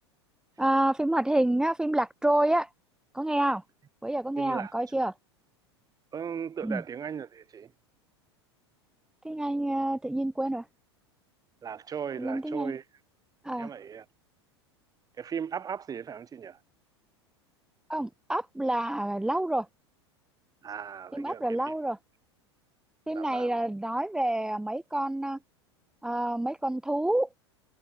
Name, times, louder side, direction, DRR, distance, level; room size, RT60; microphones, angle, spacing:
voice 1, 0.6-2.7 3.1-3.6 4.0-5.1 6.6-6.8 9.2-10.6 12.2-12.7 13.4-13.7 17.9-19.7 21.1-22.0 23.1-25.4 26.0-27.3, right 1 dB, 5° right, 1.6 m, -28 dB
voice 2, 4.4-4.7 6.1-7.7 11.6-12.9 13.6-14.1 15.2-16.6 20.6-21.7 23.1-23.6, right 7 dB, 25° right, 7.3 m, -37 dB
figure-of-eight pair, 85°, 15 cm